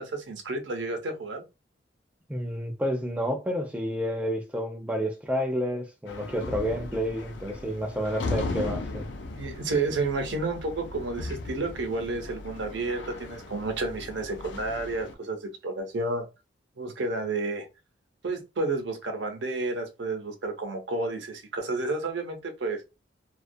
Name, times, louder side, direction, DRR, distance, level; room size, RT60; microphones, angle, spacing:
voice 1, 0.0-1.4 9.3-16.3 16.8-17.7 18.2-22.8, right 3 dB, 75° right, 0.6 m, -31 dB
voice 2, 2.3-9.1, equal, 5° right, 0.4 m, -30 dB
sound 1, 6.1-15.1, left 2 dB, 75° left, 0.5 m, -37 dB
2.3 x 2.1 x 2.5 m
head